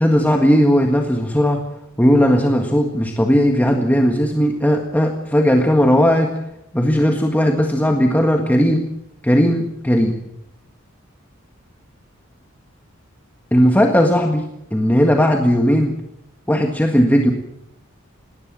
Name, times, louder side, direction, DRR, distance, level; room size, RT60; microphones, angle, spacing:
voice 1, 0.0-1.6 2.0-6.3 6.7-8.9 9.2-10.2 13.5-15.9 16.5-17.3, equal, 10° left, 2 dB, 1.7 m, -16 dB
19.5 x 19.0 x 7.6 m, 0.81 s
head